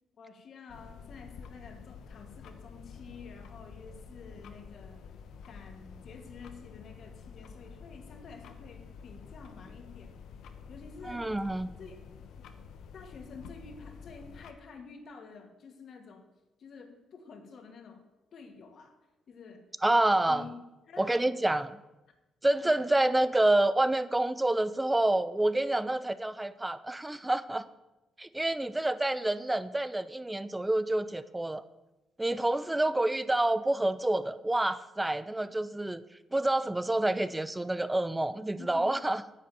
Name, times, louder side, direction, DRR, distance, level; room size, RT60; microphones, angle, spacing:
voice 1, 0.2-5.0 5.4-10.1 10.7-11.2 11.8-12.0 12.9-16.2 16.6-18.0 18.3-18.9 19.3-19.6 20.3-21.3 22.6-22.9 38.6-39.0, left 5 dB, 60° left, 4 dB, 2.3 m, -49 dB
sound 1, 0.7-14.5, left 6 dB, 75° left, 1.1 m, -49 dB
voice 2, 11.1-11.7 19.8-20.5 21.0-21.8 22.4-27.7 28.2-31.6 32.2-36.0 36.3-39.2, right 1 dB, 10° right, 14 dB, 0.7 m, -28 dB
10.0 x 7.0 x 9.1 m, 1.0 s
cardioid pair, 90°, 0 cm